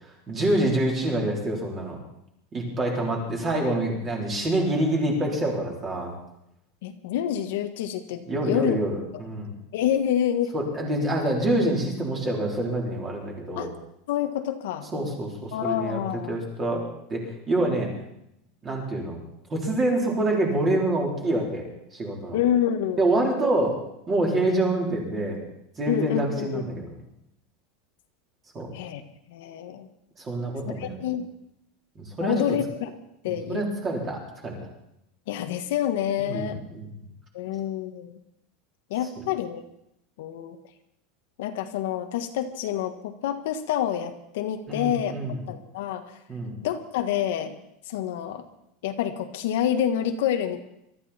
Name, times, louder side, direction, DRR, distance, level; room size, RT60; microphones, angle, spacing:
voice 1, 0.3-2.0 2.5-6.1 8.3-9.6 10.5-13.7 14.9-16.0 16.3-16.8 17.1-17.9 18.6-19.2 19.5-21.6 21.9-22.4 23.0-23.8 24.1-25.4 25.8-26.9 28.5-28.7 30.2-31.0 32.0-32.4 33.3-34.7 36.2-36.9 44.7-45.4 46.3-46.6, right 1 dB, 20° right, -1 dB, 3.7 m, -26 dB
voice 2, 6.8-8.8 9.7-10.5 13.5-13.7 14.1-14.9 15.5-16.3 22.3-23.1 25.9-26.6 28.7-29.0 29.3-29.9 30.8-31.3 32.2-32.9 33.2-33.6 35.3-36.6 37.3-38.2 38.9-39.6 40.2-40.6 41.4-45.1 45.5-46.2 46.6-47.6 47.8-48.5 48.8-50.6, left 10 dB, 70° left, 7 dB, 1.4 m, -27 dB
23.0 x 13.5 x 4.3 m, 0.79 s
supercardioid pair, 175°, 0 cm